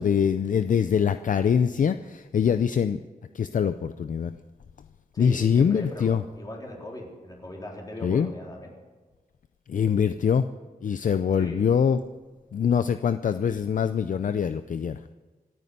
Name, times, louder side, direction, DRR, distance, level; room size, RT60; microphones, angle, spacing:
voice 1, 0.0-3.0 3.3-4.3 5.2-6.2 8.0-8.3 9.7-10.4 10.8-12.0 12.5-15.0, left 7 dB, 55° left, 11 dB, 0.5 m, -23 dB
voice 2, 5.1-8.7 11.3-11.6, left 1 dB, 25° left, -1 dB, 3.8 m, -39 dB
26.0 x 9.4 x 5.5 m, 1.3 s
wide cardioid pair, 150°, 16 cm